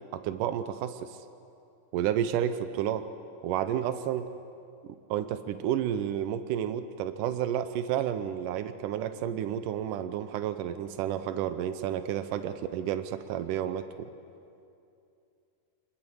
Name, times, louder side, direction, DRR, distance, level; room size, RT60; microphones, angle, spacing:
voice 1, 0.1-1.2 1.9-3.1 3.4-4.3 5.1-14.1, right 10 dB, 90° right, 11 dB, 1.8 m, -31 dB
26.0 x 21.0 x 7.8 m, 2.6 s
omnidirectional pair, 4.7 m